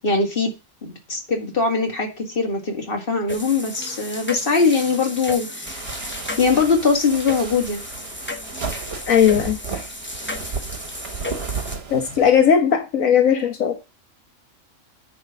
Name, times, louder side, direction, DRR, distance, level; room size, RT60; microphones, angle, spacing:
voice 1, 0.0-0.5 0.8-5.8 6.4-7.8, left 4 dB, 40° left, 2.3 m, -21 dB
sound 1, 3.3-11.8, left 1 dB, 10° left, 1.0 m, -34 dB
sound 2, 5.7-12.4, right 5 dB, 50° right, 1.5 m, -34 dB
voice 2, 9.1-9.8 11.9-13.7, left 8 dB, 80° left, 1.6 m, -18 dB
9.7 x 3.9 x 6.5 m
omnidirectional pair, 1.4 m